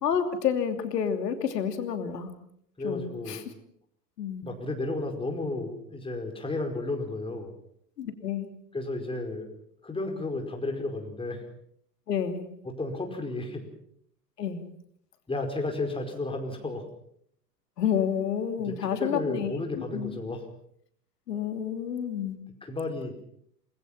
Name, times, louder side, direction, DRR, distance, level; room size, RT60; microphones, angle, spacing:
voice 1, 0.0-2.3 2.8-3.4 4.2-4.5 8.0-8.5 12.1-12.4 14.4-14.6 17.8-19.6 19.9-20.1 21.3-22.4, left 8 dB, 70° left, 8 dB, 3.0 m, -29 dB
voice 2, 2.8-3.4 4.4-7.5 8.7-9.5 9.8-11.4 12.6-13.7 15.3-16.8 18.6-20.4 22.6-23.1, left 2 dB, 10° left, 3 dB, 5.0 m, -33 dB
28.0 x 21.0 x 5.8 m, 0.68 s
figure-of-eight pair, 90°, 49 cm